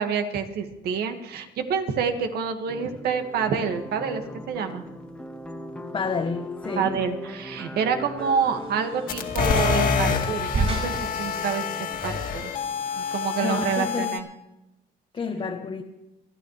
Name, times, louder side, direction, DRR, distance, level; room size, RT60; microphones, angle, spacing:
voice 1, 0.0-4.8 6.8-11.6 12.0-12.5 13.0-14.3, right 6 dB, 70° right, 1.9 m, -27 dB
sound 1, 2.7-10.5, left 1 dB, 5° left, 1.5 m, -39 dB
voice 2, 5.9-7.0 13.4-14.2 15.1-15.8, left 5 dB, 30° left, 1.1 m, -29 dB
sound 2, 8.2-13.9, right 3 dB, 35° right, 6.2 m, -34 dB
sound 3, 9.1-14.2, left 6 dB, 60° left, 2.2 m, -27 dB
29.0 x 10.5 x 3.3 m
cardioid pair, 110°, 17 cm